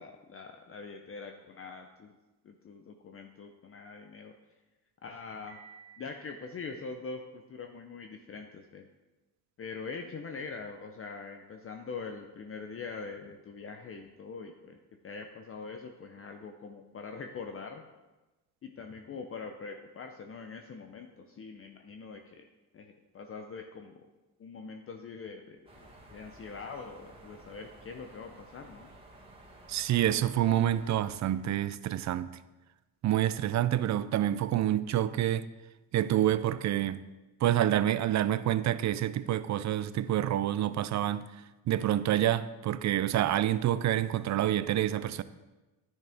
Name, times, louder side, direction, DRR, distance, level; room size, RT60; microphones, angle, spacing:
voice 1, 0.0-2.1 2.4-4.3 5.0-5.6 6.0-8.9 9.6-14.8 15.0-17.8 18.6-22.4 22.7-24.0 24.4-28.9, left 4 dB, 35° left, 0.7 m, -43 dB
Piano, 5.5-7.4, right 7 dB, 65° right, 1.5 m, -56 dB
sound 1, 25.7-31.3, right 1 dB, 15° right, 2.1 m, -54 dB
voice 2, 29.7-32.3 33.0-35.4 35.9-37.0 37.4-41.3 41.7-45.2, right 12 dB, 50° right, 0.5 m, -27 dB
10.5 x 6.5 x 3.5 m
cardioid pair, 95°, 39 cm